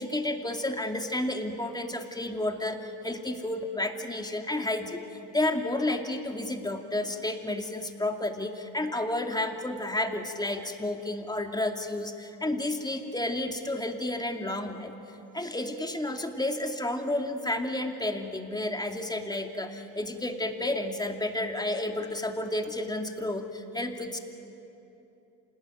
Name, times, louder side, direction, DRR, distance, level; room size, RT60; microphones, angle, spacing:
voice 1, 0.0-5.0 5.3-14.9 15.3-24.2, left 1 dB, 10° left, 4 dB, 2.6 m, -31 dB
27.0 x 20.0 x 9.4 m, 3.0 s
supercardioid pair, 80°, 39 cm